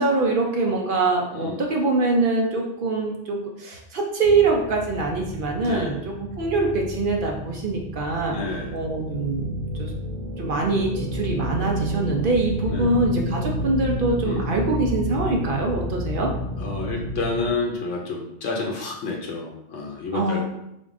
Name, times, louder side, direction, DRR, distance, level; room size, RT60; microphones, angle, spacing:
voice 1, 0.0-8.4 8.7-9.5 9.8-9.9 10.4-16.3 20.1-20.4, right 3 dB, 55° right, 0 dB, 0.7 m, -24 dB
voice 2, 1.3-1.6 5.6-6.0 8.3-8.8 12.7-12.9 14.3-14.5 16.6-20.4, left 3 dB, 85° left, 0 dB, 1.0 m, -29 dB
sound 1, 4.2-17.5, equal, 50° left, 0.9 m, -31 dB
3.7 x 3.5 x 2.5 m, 0.83 s
omnidirectional pair, 1.2 m